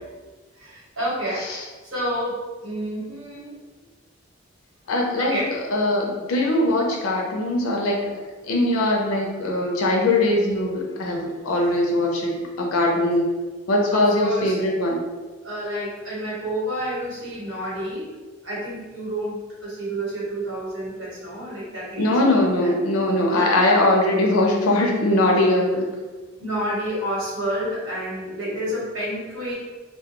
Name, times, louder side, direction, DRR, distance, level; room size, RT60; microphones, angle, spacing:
voice 1, 0.6-3.5 5.2-5.5 11.8-11.9 13.9-14.6 15.4-18.1 18.4-22.1 22.6-22.7 23.3-23.5 26.4-29.5, equal, 75° right, -8 dB, 1.2 m, -29 dB
voice 2, 4.9-5.4 5.7-8.1 8.4-12.3 12.6-13.2 13.7-15.0 22.0-25.9, left 1 dB, 90° left, 0 dB, 0.5 m, -21 dB
2.2 x 2.1 x 2.9 m, 1.3 s
head